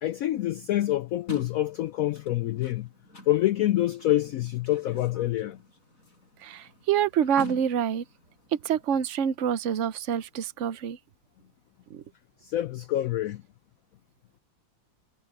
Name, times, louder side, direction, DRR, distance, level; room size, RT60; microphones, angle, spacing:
voice 1, 0.0-2.9 3.3-5.6 12.4-13.4, left 14 dB, 85° left, 0.7 m, -26 dB
sound 1, 1.3-9.0, left 1 dB, 45° left, 8.5 m, -47 dB
voice 2, 6.4-8.0 8.6-11.0 11.9-12.0, right 8 dB, 55° right, 0.8 m, -26 dB
omnidirectional pair, 2.0 m